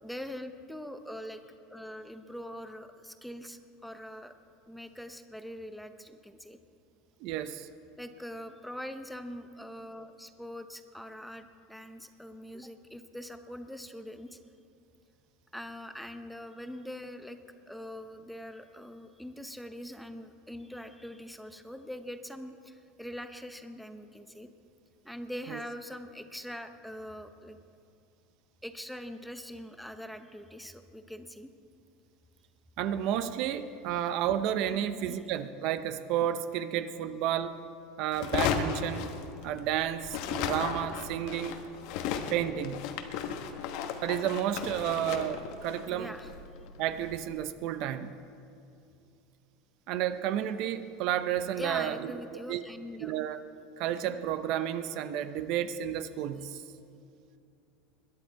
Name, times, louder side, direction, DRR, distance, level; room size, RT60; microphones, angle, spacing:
voice 1, 0.0-4.3 4.7-6.6 8.0-14.4 15.5-17.4 17.7-24.5 25.0-27.6 28.6-31.5 34.7-35.2 45.9-46.3 51.6-53.1, equal, ahead, 8 dB, 0.7 m, -43 dB
voice 2, 7.2-7.7 25.5-25.6 32.8-37.6 38.0-39.1 39.4-41.6 42.3-42.8 44.0-46.1 46.8-48.1 49.9-52.1 52.5-52.6 53.0-53.4 53.8-56.6, right 10 dB, 55° right, 12 dB, 0.6 m, -31 dB
sound 1, 38.1-39.7 40.0-47.2, left 7 dB, 60° left, 1.2 m, -35 dB
21.0 x 10.5 x 4.6 m, 2.6 s
supercardioid pair, 135°, 0 cm